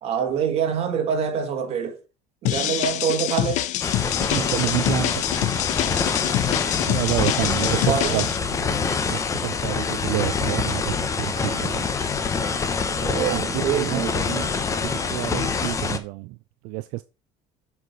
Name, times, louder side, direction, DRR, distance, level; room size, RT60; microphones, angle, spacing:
voice 1, 0.0-2.0 2.4-3.7 7.6-8.2 13.0-14.3, right 7 dB, 45° right, 1.8 m, -25 dB
sound 1, 2.5-8.4, left 14 dB, 55° left, 0.6 m, -26 dB
sound 2, 3.8-16.0, left 5 dB, 20° left, 0.8 m, -25 dB
voice 2, 4.2-5.6 6.3-11.9 13.2-16.4 16.6-17.0, right 19 dB, 75° right, 0.5 m, -30 dB
7.6 x 4.7 x 5.1 m
cardioid pair, 160°, 15 cm